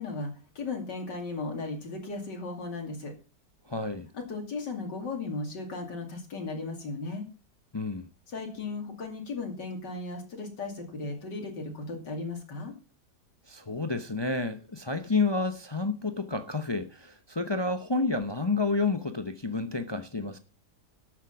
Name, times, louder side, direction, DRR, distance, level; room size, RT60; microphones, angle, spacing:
voice 1, 0.0-3.1 4.1-7.3 8.3-12.7, left 3 dB, 85° left, 3.2 m, -36 dB
voice 2, 3.7-4.1 7.7-8.1 13.5-20.4, left 3 dB, 40° left, 0.3 m, -30 dB
12.5 x 8.1 x 6.0 m
omnidirectional pair, 1.8 m